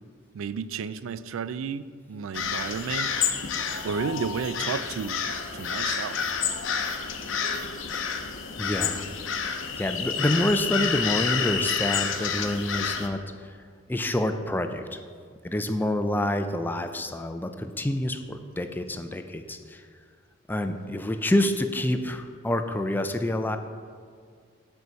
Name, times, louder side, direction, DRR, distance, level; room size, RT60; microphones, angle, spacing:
voice 1, 0.3-3.2 3.8-5.2 5.5-6.2, right 6 dB, 90° right, 14 dB, 0.3 m, -32 dB
sound 1, 2.3-13.1, left 6 dB, 75° left, 0.7 m, -29 dB
voice 2, 7.9-9.0 9.8-13.5 13.9-15.0 15.4-19.8 20.5-23.6, left 1 dB, 10° left, 7 dB, 0.4 m, -28 dB
8.0 x 4.6 x 6.3 m, 2.1 s
head